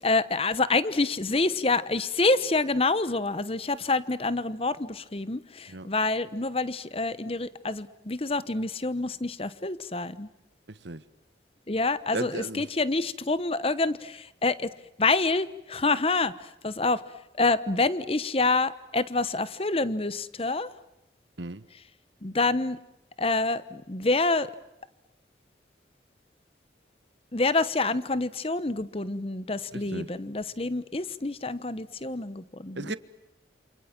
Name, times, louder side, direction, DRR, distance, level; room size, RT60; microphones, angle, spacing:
voice 1, 0.0-10.3 11.7-14.7 15.0-17.0 17.4-20.7 22.2-22.8 23.2-24.5 27.3-33.0, left 3 dB, 30° left, 1.0 m, -27 dB
voice 2, 10.7-11.0 12.1-12.6 21.4-21.6 29.7-30.1 32.8-33.0, right 2 dB, 85° right, 1.4 m, -35 dB
28.5 x 27.5 x 7.5 m
head